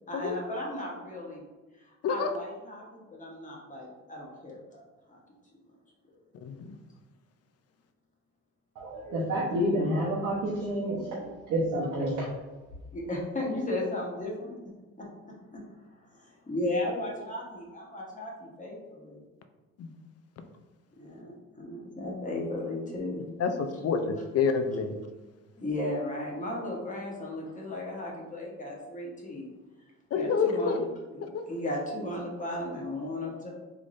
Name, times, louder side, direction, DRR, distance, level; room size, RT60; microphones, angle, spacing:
voice 1, 0.1-1.4 1.8-4.8 5.1-5.2 9.8-9.9 12.9-14.6 15.0-15.6 16.0-19.2 21.0-23.3 25.6-29.5 30.1-30.9 31.1-33.5, left 1 dB, 25° left, -3 dB, 1.1 m, -35 dB
voice 2, 8.8-12.3, right 1 dB, 90° right, -8 dB, 1.0 m, -29 dB
voice 3, 23.4-24.9 30.1-30.8 31.2-31.4, left 5 dB, 55° left, 7 dB, 0.5 m, -28 dB
3.5 x 3.4 x 2.6 m, 1.2 s
cardioid pair, 90°, 30 cm